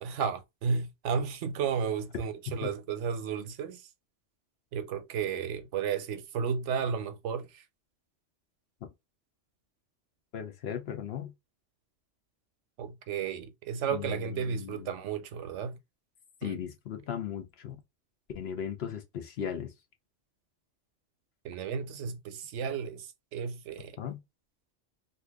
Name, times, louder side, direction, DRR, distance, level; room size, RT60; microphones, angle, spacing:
voice 1, 0.0-3.8 4.7-7.6 12.8-15.8 16.4-16.6 21.4-24.0, right 6 dB, 80° right, 0.9 m, -33 dB
voice 2, 10.3-11.3 13.9-14.9 16.4-17.8 18.3-19.7 24.0-24.2, left 9 dB, 65° left, 0.9 m, -37 dB
2.7 x 2.4 x 3.3 m
omnidirectional pair, 1.2 m